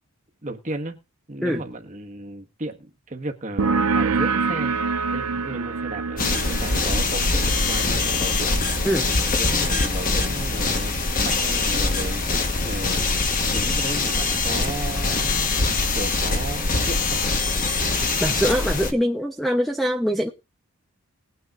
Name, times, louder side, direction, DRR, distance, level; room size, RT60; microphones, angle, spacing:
voice 1, 0.4-1.0 1.3-4.7 5.1-8.6 9.2-13.1 13.5-15.5 15.9-17.2, right 2 dB, 35° right, 1.4 m, -34 dB
sound 1, 3.6-10.8, right 4 dB, 80° right, 0.7 m, -27 dB
sound 2, 6.2-18.9, left 3 dB, 40° left, 1.2 m, -23 dB
voice 2, 18.2-20.3, equal, ahead, 0.7 m, -23 dB
20.0 x 9.2 x 2.5 m
head